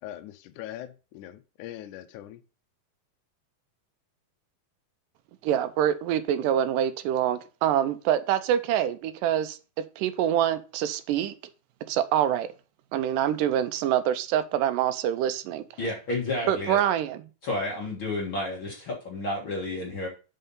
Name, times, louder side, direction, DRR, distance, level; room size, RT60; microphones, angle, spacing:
voice 1, 0.0-2.4, left 13 dB, 85° left, 1.8 m, -41 dB
voice 2, 5.4-9.6 10.0-11.3 11.9-12.5 12.9-15.6 16.5-17.2, right 10 dB, 80° right, 2.0 m, -25 dB
voice 3, 15.8-16.8 17.4-20.1, left 2 dB, 50° left, 1.7 m, -31 dB
5.6 x 5.5 x 5.4 m
omnidirectional pair, 4.3 m